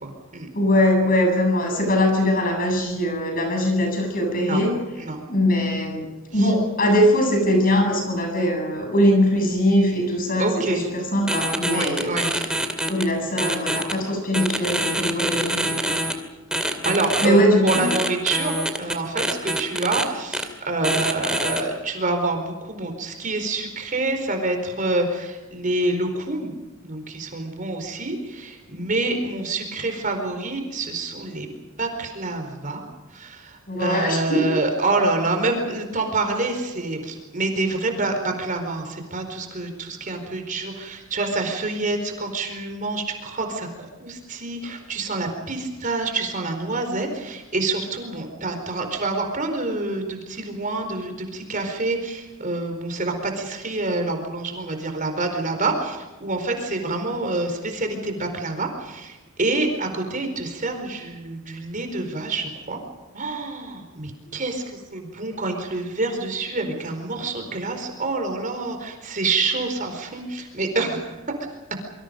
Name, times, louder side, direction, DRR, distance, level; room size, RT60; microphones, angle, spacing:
voice 1, 0.0-0.5 4.4-4.6 4.9-5.2 6.3-6.5 10.4-10.8 11.7-12.3 15.0-15.3 16.8-26.6 26.8-31.5 31.8-32.8 33.1-43.7 44.0-62.8 63.1-71.1, right 2 dB, 40° right, 5 dB, 4.5 m, -27 dB
voice 2, 0.5-4.8 5.3-12.1 12.8-16.0 17.2-17.9 33.7-34.5, equal, 45° left, 3 dB, 8.0 m, -21 dB
sound 1, 11.3-13.0 13.4-13.9 14.3-16.1 16.5-17.3 17.7-20.0 20.3-20.4 20.8-21.6, right 1 dB, 5° right, 2.5 m, -25 dB
27.0 x 25.0 x 5.3 m, 1.1 s
head